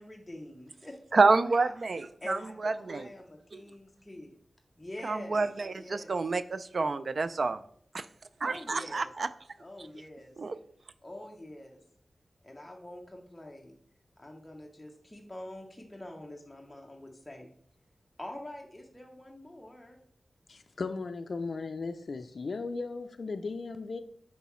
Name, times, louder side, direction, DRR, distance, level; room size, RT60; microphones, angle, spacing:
voice 1, 0.0-1.7 2.2-4.4 4.8-5.5 5.7-6.1 8.4-9.1 9.6-10.4 11.0-11.8 12.4-13.8 14.2-17.5 18.2-20.0, left 1 dB, 15° left, 0 dB, 0.7 m, -45 dB
voice 2, 1.1-3.1 3.5-3.6 5.0-7.6 7.9-8.1 8.4-9.3 10.4-10.6, right 3 dB, 60° right, 13 dB, 0.3 m, -28 dB
voice 3, 20.5-24.0, left 4 dB, 65° left, 6 dB, 0.3 m, -36 dB
6.7 x 4.7 x 3.1 m, 0.63 s
wide cardioid pair, 105°, 0 cm